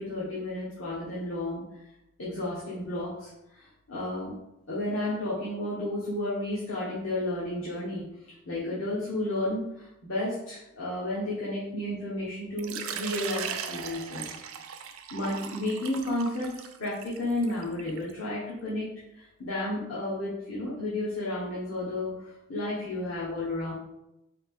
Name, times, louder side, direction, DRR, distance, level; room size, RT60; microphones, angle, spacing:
voice 1, 0.0-1.9 2.2-4.3 4.7-14.3 15.1-18.9 19.1-23.7, left 1 dB, 65° left, -7 dB, 1.0 m, -32 dB
Water / Liquid, 12.6-18.1, right 7 dB, 70° right, 0.4 m, -38 dB
4.0 x 2.8 x 3.4 m, 0.87 s
head